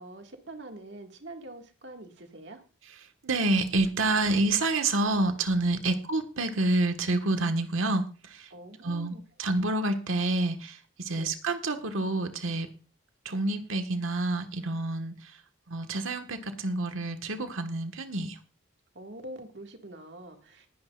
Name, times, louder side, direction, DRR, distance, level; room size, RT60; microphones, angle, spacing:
voice 1, 0.0-2.6 8.5-9.2 11.2-11.3 18.9-20.7, right 1 dB, 60° right, 4 dB, 2.0 m, -44 dB
voice 2, 3.2-8.5 8.8-12.7 13.2-15.4 15.7-18.4, right 2 dB, 90° right, 6 dB, 1.5 m, -28 dB
19.5 x 10.5 x 2.5 m, 0.34 s
head